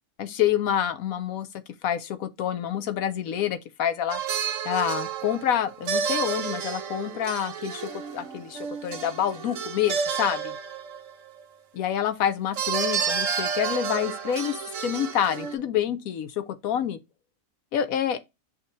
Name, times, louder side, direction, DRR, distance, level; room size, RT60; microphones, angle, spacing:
voice 1, 0.2-1.5 1.8-4.2 4.6-10.6 11.8-17.0 17.7-18.2, left 9 dB, 90° left, 1.2 m, -27 dB
sound 1, 4.1-11.4 12.5-15.5, right 6 dB, 70° right, 1.3 m, -30 dB
6.2 x 2.9 x 5.2 m
omnidirectional pair, 1.4 m